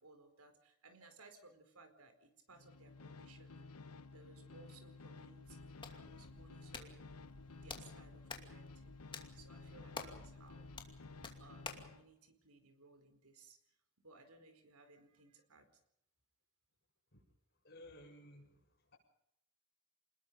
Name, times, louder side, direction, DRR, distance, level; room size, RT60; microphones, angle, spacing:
voice 1, 0.0-3.7 4.1-7.1 7.6-8.9 9.3-10.7 11.4-13.6 14.0-15.7, right 3 dB, 80° right, 8 dB, 4.5 m, -62 dB
sound 1, 2.5-12.1, left 3 dB, 90° left, 1.1 m, -54 dB
Hands, 5.4-11.9, left 4 dB, 20° left, 2.5 m, -52 dB
voice 2, 17.6-19.0, left 1 dB, 45° left, 1 dB, 7.4 m, -57 dB
27.0 x 20.5 x 5.4 m, 0.79 s
head